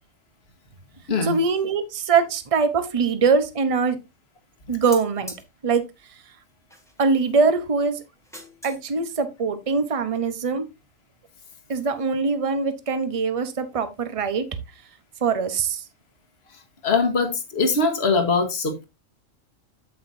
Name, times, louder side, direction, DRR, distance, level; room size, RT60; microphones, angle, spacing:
voice 1, 1.2-4.0 4.7-5.3 5.6-5.8 7.0-8.0 8.6-10.7 11.7-14.5 15.2-15.8, right 5 dB, 30° right, 0.9 m, -22 dB
sound 1, 4.9-5.4 6.7-7.1 8.2-8.8 9.1-9.2, equal, ahead, 1.5 m, -41 dB
voice 2, 16.8-18.9, left 4 dB, 50° left, 1.7 m, -22 dB
8.5 x 7.9 x 2.7 m
omnidirectional pair, 1.4 m